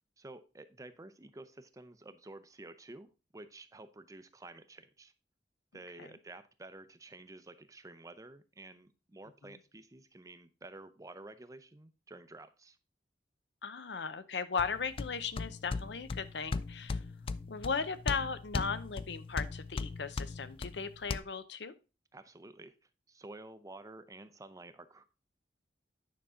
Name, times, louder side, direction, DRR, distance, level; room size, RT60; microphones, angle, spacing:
voice 1, 0.2-3.1 3.3-5.1 5.7-12.8 22.1-22.8 23.1-25.1, right 2 dB, 20° right, 12 dB, 0.6 m, -51 dB
voice 2, 13.6-17.0 17.5-21.7, left 5 dB, 75° left, 13 dB, 0.7 m, -37 dB
sound 1, 14.6-21.2, left 4 dB, 30° left, 0.3 m, -39 dB
9.5 x 5.6 x 3.7 m, 0.31 s
head